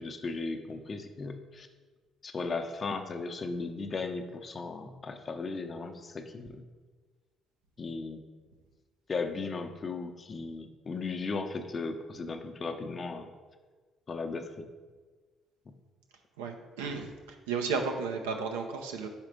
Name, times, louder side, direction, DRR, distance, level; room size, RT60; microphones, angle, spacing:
voice 1, 0.0-1.7 2.2-6.6 7.8-8.2 9.1-13.3 14.1-14.7, left 4 dB, 40° left, 6 dB, 0.6 m, -36 dB
voice 2, 16.4-19.1, right 5 dB, 85° right, 4 dB, 0.5 m, -33 dB
4.8 x 4.4 x 5.1 m, 1.4 s
hypercardioid pair, 50°, 0 cm